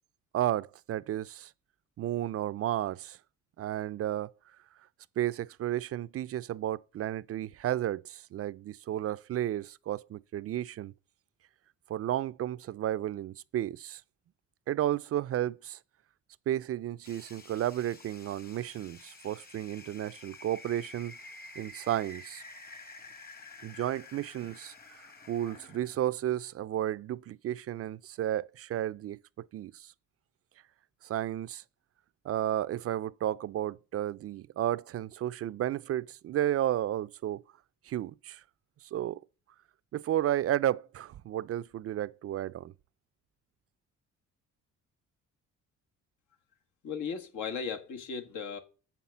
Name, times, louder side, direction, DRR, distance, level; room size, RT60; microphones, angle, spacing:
voice 1, 0.3-1.5 2.0-3.2 3.6-4.3 5.2-10.9 11.9-14.0 14.7-15.8 16.5-21.1 21.6-22.4 23.6-24.7 25.3-29.9 31.0-31.6 32.2-37.4 37.9-38.4 38.9-39.2 39.9-42.7, right 12 dB, 50° right, 0.4 m, -32 dB
sound 1, 17.0-26.0, left 2 dB, 30° left, 1.3 m, -50 dB
voice 2, 46.8-48.6, left 6 dB, 75° left, 1.5 m, -36 dB
7.1 x 5.8 x 7.1 m
cardioid pair, 90°, 30 cm